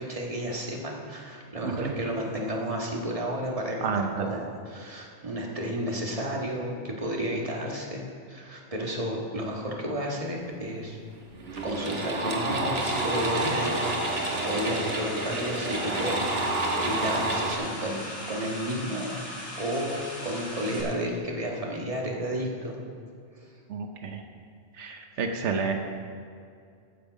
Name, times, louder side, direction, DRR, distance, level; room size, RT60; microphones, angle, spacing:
voice 1, 0.0-11.0 11.6-16.2 16.8-22.8, equal, 30° right, -1 dB, 1.6 m, -32 dB
voice 2, 1.6-1.9 3.8-4.3 23.7-24.2 24.7-25.7, right 5 dB, 85° right, 4 dB, 1.1 m, -30 dB
sound 1, 10.8-10.9 11.3-17.6, right 2 dB, 60° right, 1.5 m, -29 dB
sound 2, 12.8-20.8, left 1 dB, 60° left, 2.6 m, -39 dB
15.0 x 7.2 x 5.1 m, 2.3 s
omnidirectional pair, 1.2 m